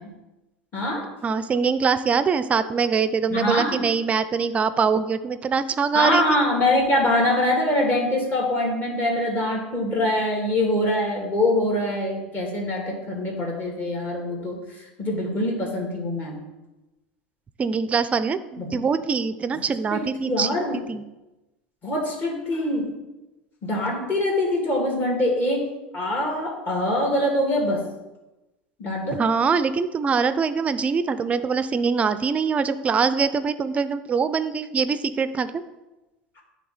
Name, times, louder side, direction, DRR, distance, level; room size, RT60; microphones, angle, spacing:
voice 1, 0.7-1.1 3.3-3.9 5.9-14.6 15.0-16.4 18.6-18.8 19.5-19.6 19.9-20.8 21.8-22.9 23.6-25.7 25.9-27.8 28.8-29.2, left 1 dB, 35° left, -1 dB, 2.1 m, -24 dB
voice 2, 1.2-6.2 17.6-20.5 20.9-21.0 29.1-35.6, right 5 dB, 25° right, 13 dB, 0.4 m, -23 dB
9.2 x 3.3 x 4.1 m, 1.0 s
hypercardioid pair, 100°, 5 cm